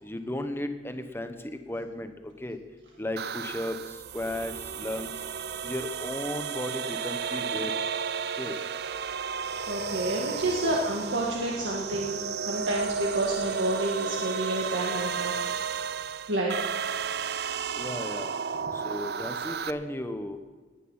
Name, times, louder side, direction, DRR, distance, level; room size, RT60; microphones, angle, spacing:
voice 1, 0.0-2.6 3.0-5.1 5.6-7.7 8.4-8.6 10.6-10.7 17.7-18.3 18.7-20.4, left 1 dB, 10° left, 8 dB, 1.0 m, -35 dB
sound 1, 3.2-19.7, right 6 dB, 60° right, 0.5 m, -33 dB
voice 2, 9.7-12.2 12.5-15.3 16.3-16.8, right 1 dB, 80° right, -2 dB, 1.8 m, -29 dB
19.0 x 9.2 x 5.6 m, 1.5 s
head